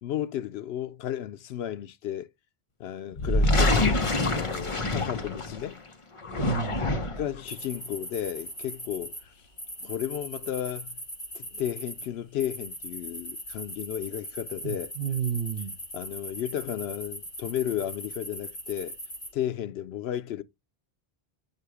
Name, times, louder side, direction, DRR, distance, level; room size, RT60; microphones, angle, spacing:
voice 1, 0.0-2.3 2.8-4.0 4.3-5.8 7.2-9.3 9.8-11.0 11.3-14.9 15.9-19.0 19.3-20.4, left 11 dB, 85° left, 0.8 m, -33 dB
sound 1, 3.1-5.7 6.2-7.3, left 2 dB, 35° left, 0.7 m, -25 dB
voice 2, 6.4-6.9 14.6-15.8, right 8 dB, 70° right, 1.0 m, -31 dB
sound 2, 7.5-9.2 9.6-12.1 12.4-19.3, equal, 60° left, 4.8 m, -40 dB
7.7 x 2.8 x 4.8 m
omnidirectional pair, 1.0 m